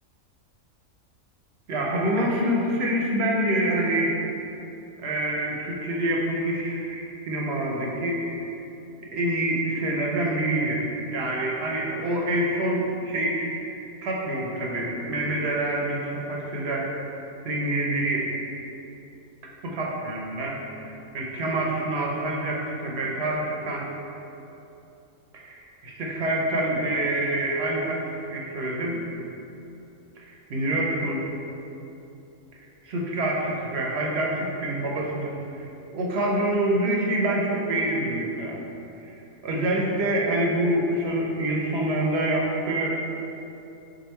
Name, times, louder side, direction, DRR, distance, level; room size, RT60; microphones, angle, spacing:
voice 1, 1.7-4.2 5.0-8.5 9.1-13.5 14.0-16.9 17.4-18.3 19.6-20.6 21.1-23.9 25.3-28.0 28.3-29.0 30.2-31.2 32.8-35.7 35.9-38.6 39.0-43.0, right 1 dB, 60° right, -2 dB, 0.8 m, -26 dB
4.7 x 2.6 x 4.2 m, 2.9 s
omnidirectional pair, 1.4 m